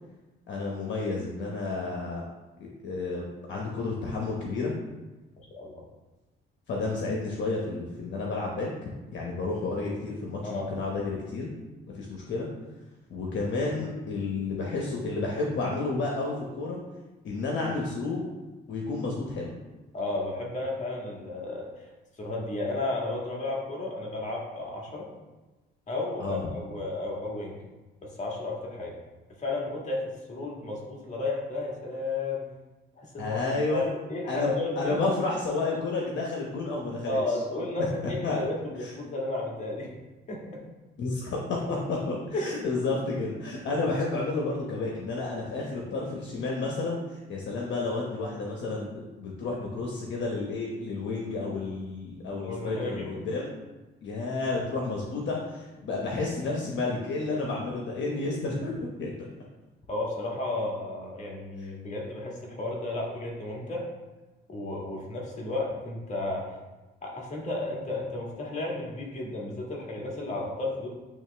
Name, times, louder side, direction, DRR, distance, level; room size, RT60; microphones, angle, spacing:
voice 1, 0.5-2.2 2.6-4.7 6.7-8.7 9.1-11.5 11.9-12.5 13.1-16.8 17.2-18.3 18.7-19.5 26.2-26.4 33.2-33.9 34.3-37.2 38.2-38.4 38.8-38.9 41.0-53.5 54.0-58.7 59.0-59.1, left 3 dB, 65° left, -2 dB, 1.1 m, -31 dB
voice 2, 19.9-21.7 22.2-25.1 25.9-27.6 28.0-29.0 29.4-32.5 33.0-35.1 37.1-39.9 40.3-40.6 42.3-42.6 52.4-53.2 59.9-63.9 64.5-66.5 67.0-70.9, left 2 dB, 35° left, -2 dB, 1.8 m, -33 dB
8.8 x 3.2 x 3.4 m, 1.1 s
cardioid pair, 90°, 20 cm